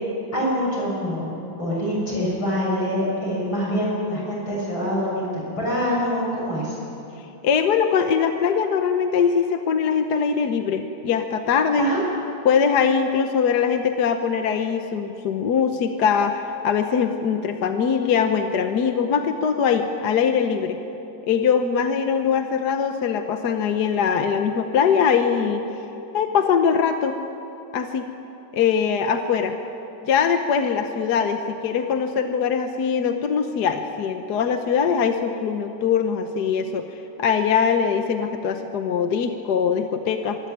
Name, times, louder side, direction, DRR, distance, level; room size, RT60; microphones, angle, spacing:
voice 1, 0.3-6.8 11.8-12.0, equal, 80° left, -4 dB, 8.1 m, -25 dB
voice 2, 7.4-11.9 12.4-20.8 21.2-25.6 26.1-27.2 27.7-28.1 28.5-29.6 30.1-36.9 37.2-40.4, left 6 dB, 60° left, 7 dB, 1.4 m, -22 dB
24.0 x 13.5 x 9.9 m, 3.0 s
omnidirectional pair, 2.2 m